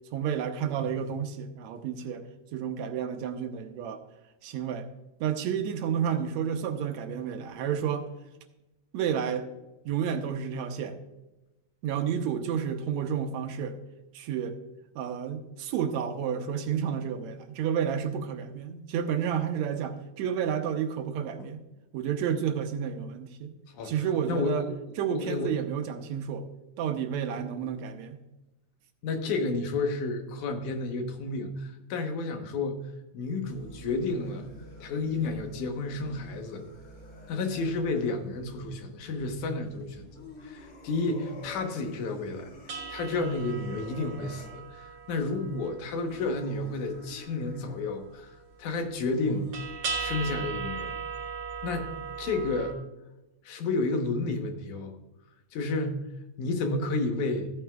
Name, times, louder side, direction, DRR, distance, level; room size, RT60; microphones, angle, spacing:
voice 1, 0.1-2.2 2.5-4.0 4.4-4.9 5.2-8.1 8.9-9.5 9.9-11.0 11.8-13.8 14.1-14.6 15.0-21.6 21.9-23.5 23.8-24.7 25.0-26.5 26.8-28.2, right 8 dB, 75° right, 7 dB, 2.0 m, -30 dB
voice 2, 24.3-24.7 25.1-25.6 29.0-32.9 33.1-34.5 34.8-36.6 37.3-40.2 40.4-49.5 50.0-51.0 51.6-51.9 52.2-52.8 53.5-54.9 55.5-56.0 56.4-57.5, left 3 dB, 85° left, 5 dB, 2.6 m, -31 dB
sound 1, 33.4-38.2 40.0-44.6 46.0-47.9 49.2-49.7, left 1 dB, 55° left, 3.0 m, -50 dB
sound 2, 33.4-40.7 41.0-41.5 41.8-41.9 42.3-52.7, right 5 dB, 55° right, 2.1 m, -41 dB
14.0 x 9.0 x 2.3 m, 1.0 s
omnidirectional pair, 3.4 m